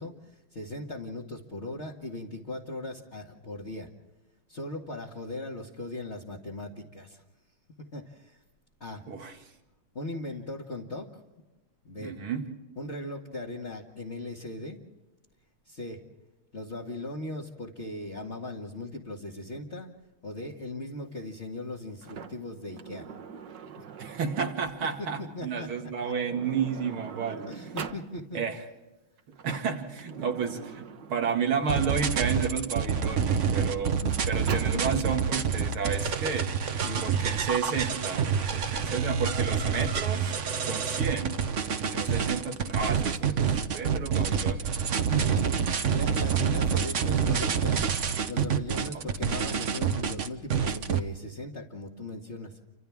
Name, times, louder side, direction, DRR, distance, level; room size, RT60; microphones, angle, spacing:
voice 1, 0.0-3.9 4.5-7.2 7.8-8.4 8.8-9.0 9.9-11.1 11.8-12.2 12.8-14.8 15.7-16.0 16.5-19.9 20.2-23.1 23.8-23.9 25.0-26.1 27.5-28.4 34.0-34.4 34.7-35.0 36.8-37.3 41.9-42.2 45.4-52.6, left 2 dB, 35° left, -4 dB, 2.0 m, -39 dB
voice 2, 9.1-9.4 12.0-12.5 24.0-27.6 28.3-28.6 29.4-30.8 31.1-34.0 34.2-36.5 37.0-41.4 41.8-45.4 48.9-49.0, right 6 dB, 90° right, 3 dB, 2.9 m, -32 dB
Sliding door, 22.0-24.9 25.8-25.9 26.2-28.1 29.2-31.7 32.5-34.8, right 7 dB, 60° right, 1.8 m, -42 dB
sound 1, 31.7-51.0, right 7 dB, 45° right, 1.1 m, -27 dB
30.0 x 25.5 x 3.6 m, 1.1 s
omnidirectional pair, 2.2 m